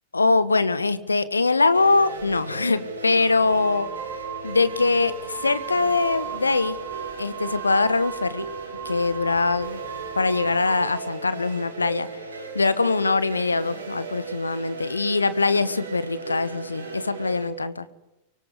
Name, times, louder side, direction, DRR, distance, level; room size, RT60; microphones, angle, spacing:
voice 1, 0.1-3.9 4.4-6.8 7.2-8.5 8.8-9.8 10.2-12.1 12.5-17.8, left 3 dB, 80° left, 15 dB, 1.4 m, -22 dB
sound 1, 1.7-17.5, right 3 dB, 75° right, 6.3 m, -36 dB
sound 2, 2.2-2.4 3.2-10.9, right 10 dB, 30° right, 1.6 m, -38 dB
24.0 x 23.5 x 9.8 m, 0.94 s
figure-of-eight pair, 90°, 0 cm